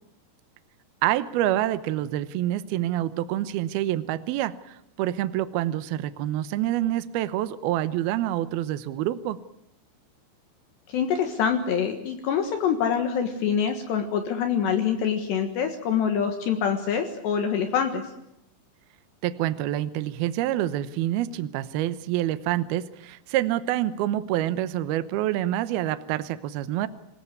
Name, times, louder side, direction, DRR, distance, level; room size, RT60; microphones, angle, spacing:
voice 1, 1.0-9.4 19.2-26.9, right 13 dB, 85° right, 13 dB, 2.2 m, -27 dB
voice 2, 10.9-18.0, left 7 dB, 65° left, 6 dB, 3.4 m, -25 dB
26.5 x 17.0 x 9.5 m, 0.82 s
omnidirectional pair, 5.9 m